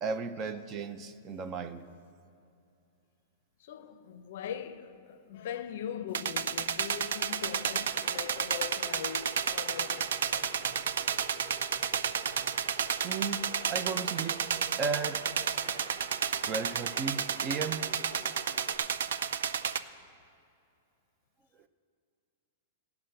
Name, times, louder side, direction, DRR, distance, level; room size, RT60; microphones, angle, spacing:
voice 1, 0.0-1.8 13.0-14.4 14.8-15.3 16.5-17.9, right 5 dB, 20° right, 0.4 m, -35 dB
voice 2, 3.6-10.8 19.9-20.0, left 9 dB, 55° left, 0.6 m, -41 dB
sound 1, 6.1-19.8, right 7 dB, 85° right, 0.4 m, -32 dB
sound 2, 7.3-18.7, right 1 dB, 35° right, 2.3 m, -50 dB
16.5 x 5.9 x 7.7 m
supercardioid pair, 175°, 0 cm